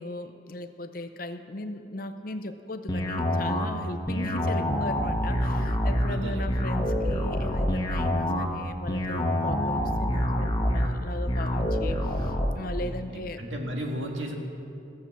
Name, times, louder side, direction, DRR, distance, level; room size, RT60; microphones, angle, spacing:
voice 1, 0.0-13.4, left 1 dB, 45° left, 8 dB, 0.6 m, -37 dB
sound 1, 2.9-12.5, equal, 20° left, 0.9 m, -26 dB
voice 2, 6.1-6.6 12.8-14.3, equal, 80° right, 1 dB, 1.8 m, -34 dB
14.5 x 7.5 x 7.1 m, 2.6 s
head